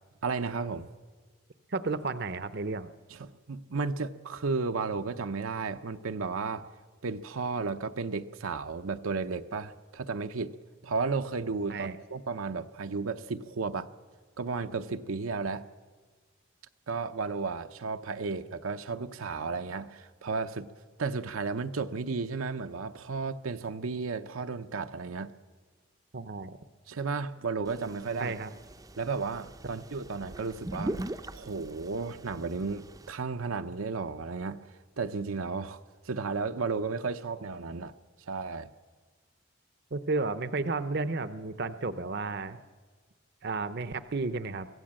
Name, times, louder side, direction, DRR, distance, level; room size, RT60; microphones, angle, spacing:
voice 1, 0.2-0.9 3.1-6.7 7.0-10.5 10.8-13.9 14.4-15.6 16.9-20.7 21.0-25.3 26.9-28.4 29.0-34.6 35.0-35.8 36.0-37.9 38.3-38.7, right 4 dB, 85° right, 0.7 m, -33 dB
voice 2, 1.7-2.9 11.7-12.0 26.1-26.6 28.2-28.5 39.9-42.6 43.4-44.7, right 3 dB, 50° right, 0.7 m, -32 dB
sound 1, 27.7-33.1, right 1 dB, 15° right, 0.5 m, -41 dB
23.5 x 16.0 x 7.6 m
head